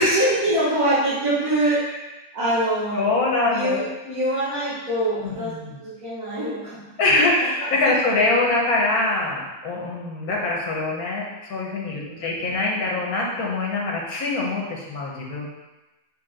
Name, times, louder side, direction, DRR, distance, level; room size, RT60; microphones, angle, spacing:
voice 1, 0.0-1.9 2.3-3.1 3.5-6.8 12.1-12.3, right 1 dB, 70° right, -13 dB, 2.3 m, -24 dB
voice 2, 3.0-3.8 5.2-5.7 7.0-15.5, left 2 dB, 85° left, -2 dB, 1.7 m, -23 dB
5.6 x 4.6 x 3.8 m, 1.1 s
omnidirectional pair, 1.5 m